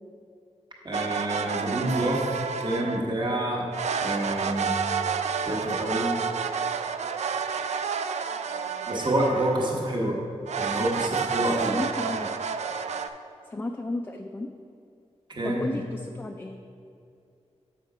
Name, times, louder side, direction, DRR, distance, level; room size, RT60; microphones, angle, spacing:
voice 1, 0.8-2.2 2.6-3.7 4.0-4.7 5.3-6.1 8.9-10.2 10.6-11.7 15.3-15.8, right 1 dB, 40° right, -2 dB, 1.1 m, -28 dB
sound 1, 0.9-3.1 3.7-9.9 10.5-13.1, right 6 dB, 85° right, 0.4 m, -30 dB
voice 2, 11.7-12.4 13.5-14.5 15.4-16.6, left 2 dB, 15° left, 4 dB, 0.3 m, -33 dB
6.6 x 5.6 x 4.8 m, 2.5 s
wide cardioid pair, 125°, 11 cm